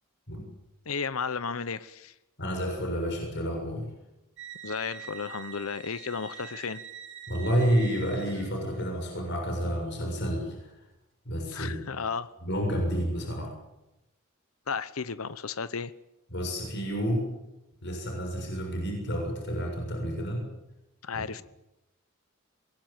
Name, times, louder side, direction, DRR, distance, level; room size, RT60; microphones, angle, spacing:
voice 1, 0.9-2.1 4.6-6.8 11.5-12.3 14.7-15.9 21.0-21.4, left 5 dB, 85° left, 14 dB, 0.9 m, -33 dB
voice 2, 2.4-3.8 7.3-10.7 11.3-11.8 12.4-13.5 16.3-17.3 17.8-20.4 21.1-21.2, equal, 55° left, 2 dB, 6.9 m, -30 dB
sound 1, 4.4-8.9, right 8 dB, 65° right, 5.4 m, -45 dB
25.0 x 21.5 x 9.0 m, 0.93 s
head